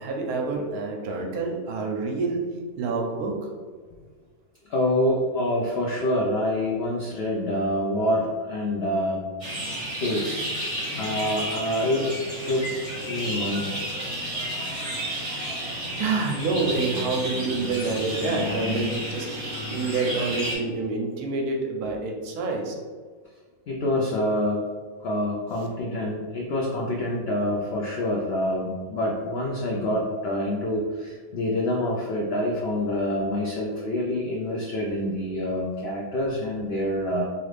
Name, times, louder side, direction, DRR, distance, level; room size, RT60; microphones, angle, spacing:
voice 1, 0.0-2.4 2.8-3.3 16.0-22.8, right 3 dB, 80° right, 1 dB, 1.1 m, -27 dB
voice 2, 4.7-9.3 10.0-12.1 12.5-12.7 13.1-13.8 23.7-24.7 25.0-37.2, left 1 dB, 85° left, -2 dB, 0.5 m, -26 dB
sound 1, 9.4-20.6, equal, 30° right, 0.8 m, -31 dB
3.0 x 2.5 x 3.2 m, 1.5 s
omnidirectional pair, 1.6 m